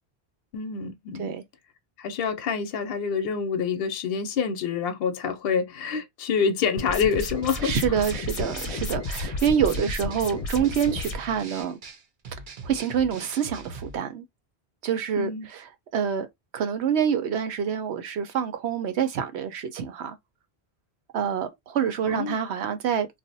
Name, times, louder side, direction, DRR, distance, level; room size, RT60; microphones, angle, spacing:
voice 1, 0.5-1.3 2.0-7.8 15.2-15.5 22.1-22.3, left 6 dB, 65° left, 0.8 m, -27 dB
sound 1, 6.8-11.2, left 2 dB, 40° left, 0.7 m, -32 dB
sound 2, 7.1-14.0, right 3 dB, 55° right, 0.8 m, -41 dB
voice 2, 7.6-11.8 12.6-14.2 14.8-15.6 15.9-16.3 16.5-20.2 21.1-23.1, right 8 dB, 90° right, 0.9 m, -26 dB
2.5 x 2.0 x 3.9 m
omnidirectional pair, 1.1 m